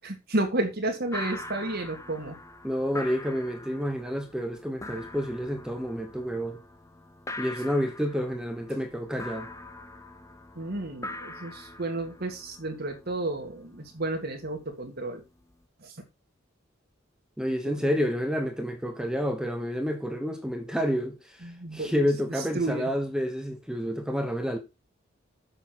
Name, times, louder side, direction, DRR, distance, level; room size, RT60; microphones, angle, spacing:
voice 1, 0.0-2.4 10.6-15.2 15.8-16.0 17.7-17.8 21.4-21.9 22.4-22.9, right 2 dB, 50° right, 2.0 m, -32 dB
sound 1, 1.1-15.6, left 2 dB, 15° left, 0.8 m, -43 dB
voice 2, 2.6-6.6 7.4-9.5 17.4-24.6, equal, 5° right, 1.2 m, -29 dB
7.1 x 6.8 x 5.8 m
head